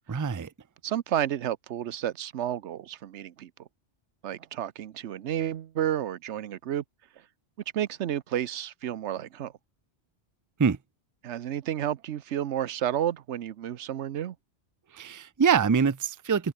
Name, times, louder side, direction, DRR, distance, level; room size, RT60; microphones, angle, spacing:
voice 1, 0.1-0.5 10.6-10.8 14.9-16.5, right 6 dB, 30° right, 0.3 m, -24 dB
voice 2, 0.8-3.7 4.2-6.8 7.2-7.3 7.7-9.5 11.2-14.4, right 11 dB, 80° right, 1.1 m, -31 dB
open air
omnidirectional pair, 1.2 m